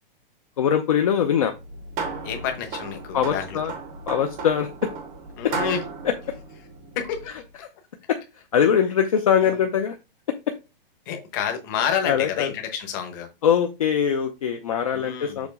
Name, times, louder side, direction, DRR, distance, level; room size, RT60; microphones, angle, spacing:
voice 1, 0.6-1.5 3.1-3.7 4.1-4.9 5.4-5.5 6.0-6.1 8.1-8.2 8.5-10.0 12.0-12.5 13.4-15.5, left 8 dB, 35° left, 5 dB, 0.6 m, -22 dB
sound 1, 1.5-7.4, right 4 dB, 15° right, 0.7 m, -35 dB
voice 2, 2.2-3.6 5.4-5.8 7.0-7.3 9.4-9.6 11.1-13.3 14.9-15.5, left 8 dB, 20° left, 5 dB, 0.9 m, -29 dB
7.1 x 2.9 x 5.2 m, 0.26 s
hypercardioid pair, 180°, 29 cm